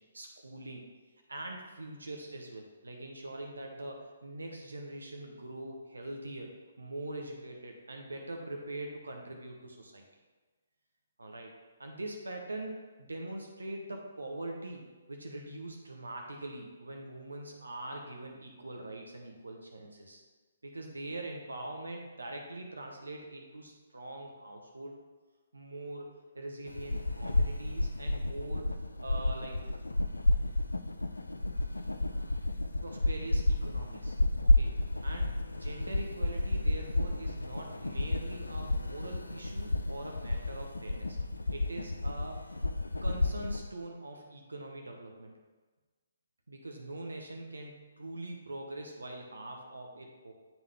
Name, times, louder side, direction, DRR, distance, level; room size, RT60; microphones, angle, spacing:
voice 1, 0.1-0.8 1.3-6.5 6.8-10.0 11.2-11.5 11.8-20.2 20.6-25.0 25.5-28.7 29.0-29.6 32.8-34.2 34.4-34.8 35.0-41.2 41.5-42.6 43.0-45.3 46.5-50.3, right 1 dB, 75° right, 2 dB, 0.8 m, -43 dB
sound 1, 26.7-43.7, left 2 dB, 80° left, 0.4 m, -31 dB
8.0 x 3.7 x 3.4 m, 1.3 s
figure-of-eight pair, 135°, 0 cm